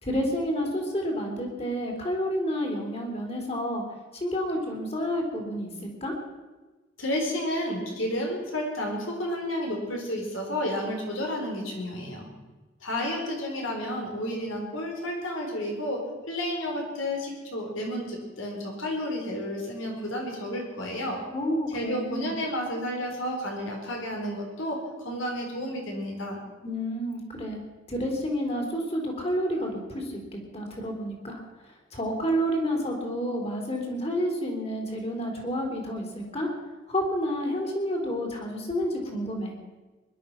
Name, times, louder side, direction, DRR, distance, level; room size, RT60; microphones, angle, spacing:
voice 1, 0.0-3.8 4.1-6.1 21.3-22.3 26.6-27.6 27.9-36.5 36.9-39.5, equal, 30° left, 1 dB, 3.4 m, -30 dB
voice 2, 7.0-12.3 12.8-21.2 21.7-26.4, left 1 dB, 80° left, 1 dB, 4.6 m, -31 dB
21.0 x 11.5 x 5.9 m, 1.2 s
head